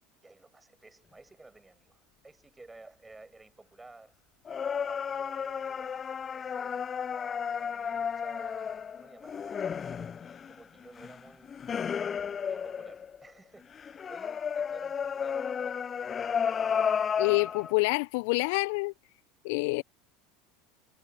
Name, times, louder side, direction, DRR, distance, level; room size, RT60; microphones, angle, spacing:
voice 1, 0.2-4.1 4.8-6.9 7.5-11.6 12.5-15.8, right 2 dB, 10° right, 6.4 m, -54 dB
sound 1, 4.5-13.3 13.7-17.7, left 7 dB, 30° left, 0.8 m, -33 dB
voice 2, 17.2-18.9 19.4-19.8, left 28 dB, 60° left, 1.3 m, -27 dB
figure-of-eight pair, 75°, 0 cm